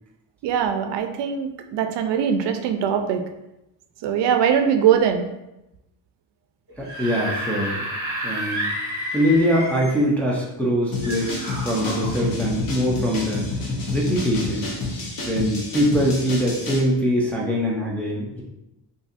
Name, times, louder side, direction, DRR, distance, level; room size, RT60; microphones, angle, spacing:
voice 1, 0.4-3.2 4.0-5.2, right 8 dB, 75° right, 6 dB, 0.5 m, -21 dB
Screaming / Screech, 6.7-10.1 11.0-12.1, equal, 25° right, 1.5 m, -30 dB
voice 2, 6.8-7.8 8.2-8.7 9.1-13.5 13.9-14.7 15.3-18.4, equal, 5° left, -4 dB, 0.3 m, -23 dB
sound 1, 10.9-16.8, left 2 dB, 55° left, 0.9 m, -29 dB
3.9 x 2.6 x 2.5 m, 0.92 s
cardioid pair, 155°, 42 cm